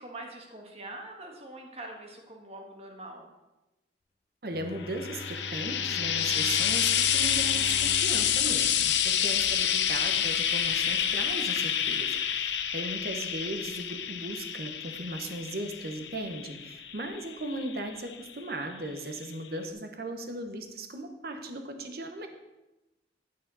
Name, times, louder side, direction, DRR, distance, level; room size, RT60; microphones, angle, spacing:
voice 1, 0.0-3.3, right 1 dB, 35° right, 2 dB, 1.6 m, -44 dB
voice 2, 4.4-22.3, right 1 dB, 60° right, 6 dB, 1.1 m, -37 dB
Bowed string instrument, 4.5-9.8, left 1 dB, 35° left, 0.5 m, -43 dB
Frying (food), 4.8-18.3 19.2-19.3, left 9 dB, 85° left, 0.6 m, -28 dB
9.5 x 8.4 x 4.1 m, 1.0 s
head